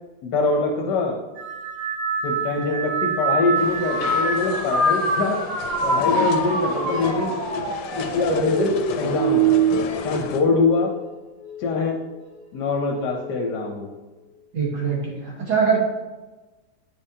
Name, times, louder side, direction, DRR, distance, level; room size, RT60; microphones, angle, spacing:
voice 1, 0.2-1.2 2.2-5.4 5.8-7.4 7.9-9.5 10.0-10.9 11.6-12.0 12.5-13.9, left 3 dB, 70° left, 1 dB, 1.3 m, -23 dB
sound 1, 1.4-11.0 11.4-12.0 13.0-13.3, right 3 dB, 75° right, 2.2 m, -25 dB
sound 2, 3.6-10.4, left 6 dB, 85° left, 1.4 m, -32 dB
voice 2, 14.5-15.8, right 6 dB, 60° right, -2 dB, 1.9 m, -22 dB
8.4 x 5.4 x 2.7 m, 1.2 s
omnidirectional pair, 2.0 m